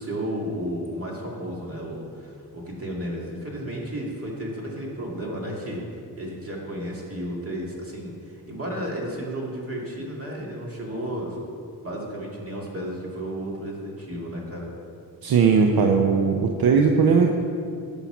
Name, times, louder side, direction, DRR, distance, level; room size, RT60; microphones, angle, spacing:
voice 1, 0.0-5.8 6.2-11.4 11.8-14.7, equal, 35° right, -2 dB, 2.5 m, -33 dB
voice 2, 15.2-17.3, right 5 dB, 70° right, 3 dB, 0.8 m, -18 dB
10.0 x 5.7 x 6.0 m, 2.4 s
cardioid pair, 85°, 38 cm